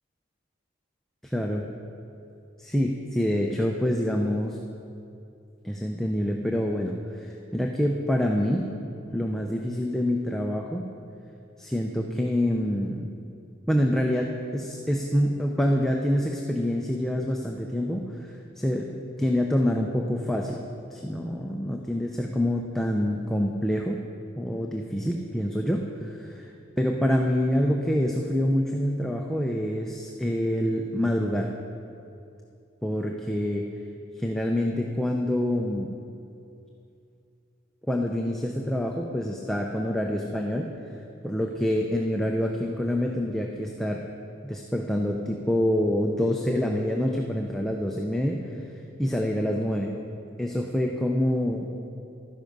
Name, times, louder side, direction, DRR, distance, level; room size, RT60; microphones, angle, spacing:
voice 1, 1.2-1.6 2.6-4.6 5.6-8.7 9.1-10.8 11.6-13.1 13.7-18.3 18.6-20.6 20.9-24.0 24.4-26.5 26.8-31.5 32.8-33.6 34.2-35.9 37.9-40.7 41.2-44.0 44.4-48.4 49.0-49.9 50.4-51.7, equal, ahead, 1 dB, 0.6 m, -26 dB
12.5 x 9.8 x 5.3 m, 2.6 s
head